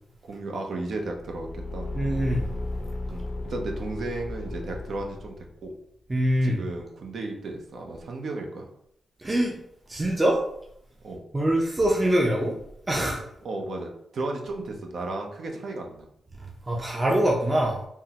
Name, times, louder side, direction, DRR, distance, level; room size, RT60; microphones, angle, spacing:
voice 1, 0.3-1.9 3.1-5.3 5.6-5.7 6.4-8.7 11.0-11.2 13.4-16.1, right 2 dB, 70° right, 2 dB, 0.5 m, -34 dB
Car / Engine, 1.0-5.6, left 2 dB, 50° left, 0.5 m, -34 dB
voice 2, 1.9-2.5 6.1-6.6 9.2-9.6 9.9-10.4 11.3-12.6 12.9-13.2 16.3-17.9, right 1 dB, 25° right, -1 dB, 0.6 m, -24 dB
3.5 x 2.1 x 2.8 m, 0.73 s
cardioid pair, 55°, 0 cm